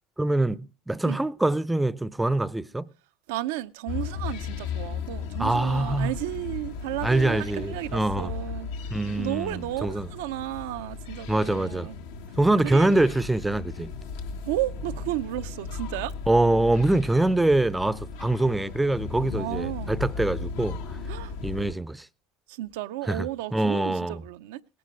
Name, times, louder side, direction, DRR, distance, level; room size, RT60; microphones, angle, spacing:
voice 1, 0.2-2.9 5.4-6.1 7.0-8.3 8.9-10.1 11.3-11.9 12.4-13.9 16.3-20.8 21.4-22.1 23.1-23.3 23.5-24.2, right 2 dB, 5° right, 0.5 m, -24 dB
voice 2, 3.3-8.9 9.2-12.0 12.6-12.9 14.5-16.1 19.3-20.0 21.1-21.3 22.5-24.6, right 15 dB, 80° right, 0.5 m, -33 dB
sound 1, 3.9-21.7, left 5 dB, 80° left, 1.4 m, -36 dB
18.5 x 10.5 x 3.1 m
supercardioid pair, 105°, 0 cm